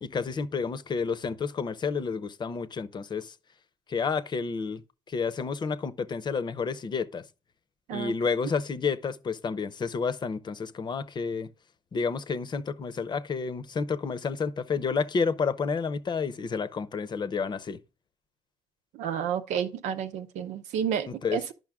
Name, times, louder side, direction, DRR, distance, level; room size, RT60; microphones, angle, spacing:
voice 1, 0.0-3.3 3.9-4.8 5.1-7.2 7.9-11.5 11.9-17.8 21.1-21.4, left 5 dB, 40° left, 0.8 m, -30 dB
voice 2, 18.9-21.5, right 8 dB, 85° right, 0.9 m, -31 dB
10.5 x 5.5 x 3.6 m
cardioid pair, 85°, 12 cm